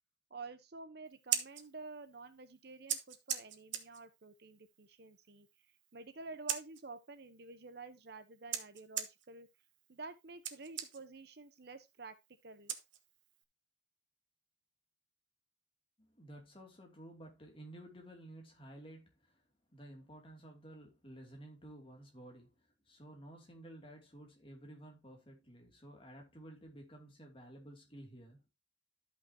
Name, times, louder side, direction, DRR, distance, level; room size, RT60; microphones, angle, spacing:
voice 1, 0.3-5.5 5.9-9.5 9.9-12.2 12.4-12.7, right 3 dB, 55° right, 0.9 m, -50 dB
Scissors, 1.1-13.4, right 10 dB, 80° right, 1.2 m, -44 dB
voice 2, 16.0-19.4 19.7-28.4, right 1 dB, 30° left, 2.5 m, -53 dB
13.0 x 5.8 x 2.8 m
head